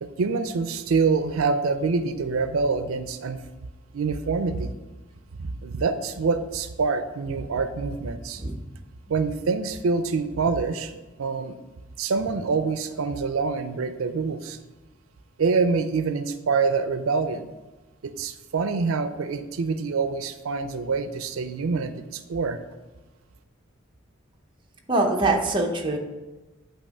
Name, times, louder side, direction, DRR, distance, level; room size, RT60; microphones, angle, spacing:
voice 1, 0.0-3.4 3.9-4.7 5.4-8.4 9.1-11.6 12.0-14.6 15.4-17.5 18.0-22.6, right 4 dB, 90° right, 10 dB, 0.5 m, -26 dB
voice 2, 24.9-26.0, right 2 dB, 25° right, 1 dB, 0.8 m, -23 dB
8.7 x 3.0 x 6.4 m, 1.1 s
head